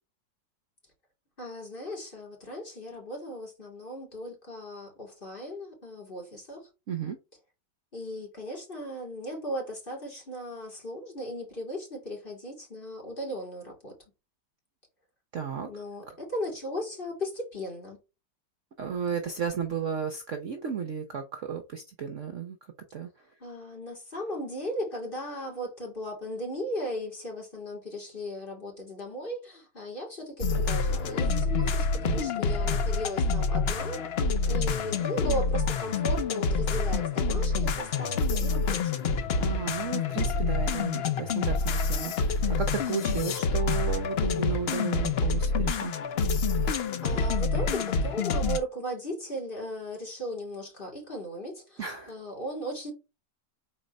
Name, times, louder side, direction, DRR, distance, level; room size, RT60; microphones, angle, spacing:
voice 1, 1.4-6.6 7.9-13.9 15.7-18.0 23.4-34.0 34.5-39.0 46.7-51.8 52.1-52.9, equal, 30° left, 2.5 m, -37 dB
voice 2, 15.3-15.7 18.8-22.6 22.9-23.1 32.0-32.2 39.4-45.9 51.8-52.1, right 7 dB, 55° right, 0.9 m, -33 dB
sound 1, 30.4-48.6, left 4 dB, 70° left, 0.5 m, -27 dB
4.4 x 4.3 x 5.1 m
omnidirectional pair, 1.9 m